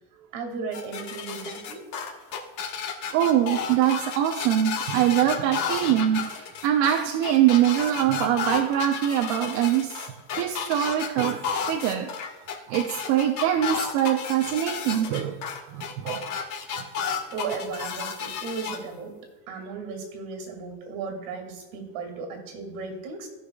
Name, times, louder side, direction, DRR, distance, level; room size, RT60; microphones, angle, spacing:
voice 1, 0.3-1.8 17.3-19.1 19.5-23.3, right 4 dB, 85° right, 4 dB, 2.5 m, -35 dB
sound 1, 0.7-18.8, left 6 dB, 50° left, 1.4 m, -32 dB
voice 2, 3.1-10.1 10.4-12.1 12.7-15.4 15.7-16.3, right 11 dB, 70° right, 4 dB, 0.8 m, -23 dB
16.5 x 5.7 x 2.4 m, 1.2 s
cardioid pair, 160°, 38 cm